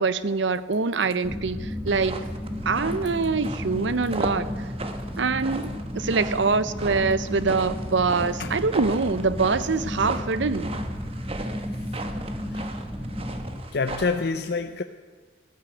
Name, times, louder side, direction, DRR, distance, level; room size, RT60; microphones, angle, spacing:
voice 1, 0.0-2.2 2.6-4.5 5.2-10.7, right 4 dB, 70° right, 15 dB, 0.7 m, -24 dB
sound 1, 1.2-13.6, equal, 5° right, 1.3 m, -33 dB
sound 2, 1.9-14.3, right 2 dB, 30° right, 1.1 m, -37 dB
voice 2, 13.7-14.8, left 4 dB, 55° left, 8 dB, 0.6 m, -27 dB
15.0 x 10.0 x 7.8 m, 1.5 s
head